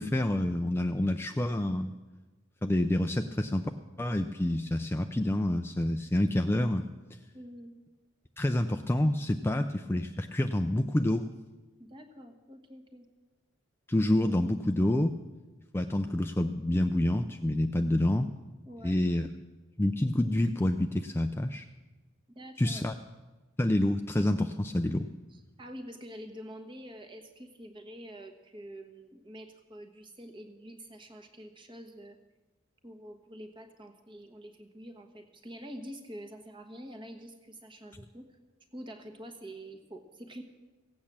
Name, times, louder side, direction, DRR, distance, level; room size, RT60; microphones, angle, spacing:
voice 1, 0.0-1.9 2.6-3.7 4.0-6.8 8.4-11.2 13.9-15.2 15.7-18.3 18.8-19.3 19.8-21.7 22.6-22.9 23.6-25.1, left 1 dB, 10° left, 6 dB, 0.4 m, -28 dB
voice 2, 7.3-7.8 8.5-8.6 11.8-13.1 18.6-19.0 22.3-22.8 25.3-32.2 32.8-38.3 38.7-40.4, equal, 25° right, 5 dB, 1.2 m, -46 dB
16.0 x 8.5 x 7.3 m, 1.2 s
head